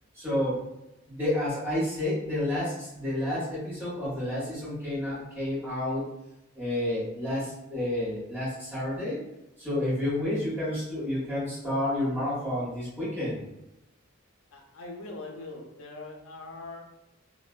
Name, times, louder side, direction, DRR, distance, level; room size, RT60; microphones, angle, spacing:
voice 1, 0.1-0.6 1.1-6.1 6.5-9.2 9.6-13.4, left 1 dB, 10° right, -11 dB, 1.4 m, -30 dB
voice 2, 14.5-16.8, left 2 dB, 75° left, 1 dB, 0.5 m, -42 dB
3.0 x 2.1 x 2.3 m, 0.89 s
head